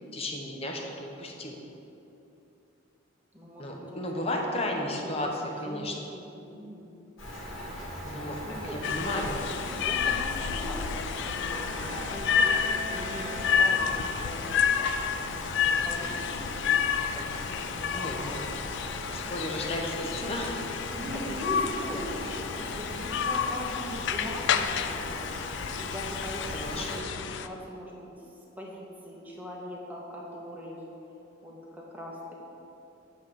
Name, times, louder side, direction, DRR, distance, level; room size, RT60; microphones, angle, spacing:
voice 1, 0.1-1.6 3.6-5.9 7.8-8.4 8.7-9.4 17.9-18.6 19.1-20.6 26.5-27.1, left 1 dB, 30° left, 1 dB, 0.8 m, -34 dB
voice 2, 3.3-4.0 4.4-6.9 8.4-9.4 9.7-14.9 15.6-16.9 17.1-17.4 17.7-18.3 19.1-19.3 19.7-20.4 20.9-26.4 26.7-28.1 28.6-30.8 31.1-31.2 31.4-32.2, equal, 10° right, -4 dB, 1.1 m, -41 dB
Rain, 7.2-27.0, equal, 80° left, 1.7 m, -40 dB
sound 1, 8.8-27.5, left 7 dB, 60° left, 0.3 m, -30 dB
sound 2, 11.1-14.4, right 1 dB, 70° right, 0.8 m, -43 dB
7.9 x 3.5 x 6.5 m, 2.9 s
head